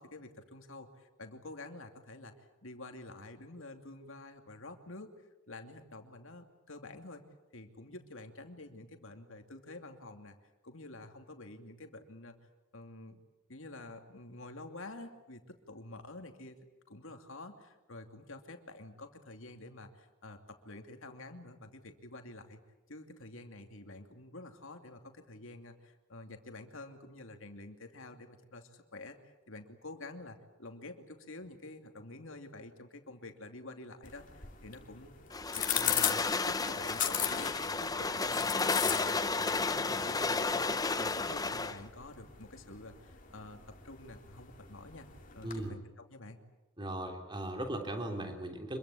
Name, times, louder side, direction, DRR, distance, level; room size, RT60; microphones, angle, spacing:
voice 1, 0.0-2.3 2.6-5.1 5.5-7.2 7.5-10.3 10.6-12.3 12.7-13.2 13.5-16.5 16.9-22.6 22.9-35.1 35.6-43.6 43.8-45.1 45.3-46.4, left 2 dB, 65° left, 6 dB, 2.7 m, -49 dB
sound 1, 34.0-45.7, left 10 dB, 35° left, 2.7 m, -39 dB
sound 2, 35.3-41.8, left 3 dB, 15° left, 0.8 m, -32 dB
voice 2, 45.4-45.7 46.8-48.8, right 1 dB, 20° right, 4 dB, 3.3 m, -38 dB
25.5 x 23.0 x 8.5 m, 1.1 s
head